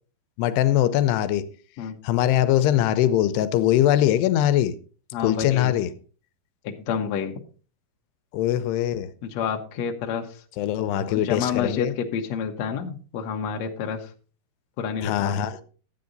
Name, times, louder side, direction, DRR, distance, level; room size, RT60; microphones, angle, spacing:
voice 1, 0.4-1.5 2.0-4.8 5.2-5.9 8.3-9.1 10.6-11.9 15.0-15.6, left 12 dB, 85° left, 2.8 m, -22 dB
voice 2, 5.1-5.8 6.6-7.3 9.2-10.4 11.1-14.1 14.8-15.3, left 7 dB, 65° left, 1.8 m, -29 dB
13.0 x 8.7 x 3.9 m
omnidirectional pair, 4.6 m